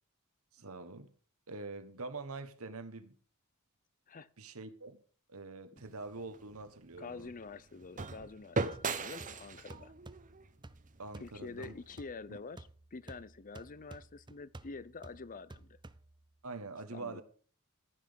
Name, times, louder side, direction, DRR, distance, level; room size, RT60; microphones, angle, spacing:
voice 1, 0.5-1.1 1.5-3.2 4.4-5.0 5.3-7.3 11.0-11.7 12.3-12.4 16.4-17.2, right 3 dB, 70° right, 1.4 m, -45 dB
sound 1, 5.8-11.9, right 3 dB, 35° right, 1.0 m, -40 dB
voice 2, 7.0-9.9 11.2-15.8 16.9-17.2, left 4 dB, 40° left, 0.6 m, -47 dB
sound 2, 8.7-16.4, right 2 dB, 20° right, 0.6 m, -54 dB
14.5 x 6.1 x 7.0 m
head